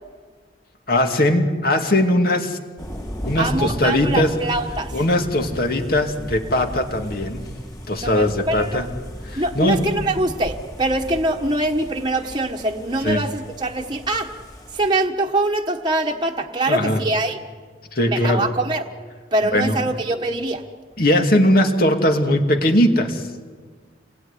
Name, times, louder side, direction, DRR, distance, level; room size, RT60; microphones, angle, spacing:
voice 1, 0.9-2.6 3.2-4.3 4.9-7.4 7.9-8.9 9.3-10.0 13.0-13.2 16.7-17.0 17.9-18.4 19.5-19.8 21.0-23.3, left 1 dB, 50° left, 4 dB, 2.5 m, -19 dB
sound 1, 2.8-14.9, equal, 20° left, 4.1 m, -36 dB
voice 2, 3.4-5.0 8.0-8.8 9.4-14.3 14.7-17.4 18.0-18.9 19.3-20.6, right 2 dB, 25° right, 1 dB, 1.4 m, -23 dB
28.0 x 21.0 x 9.9 m, 1.5 s
head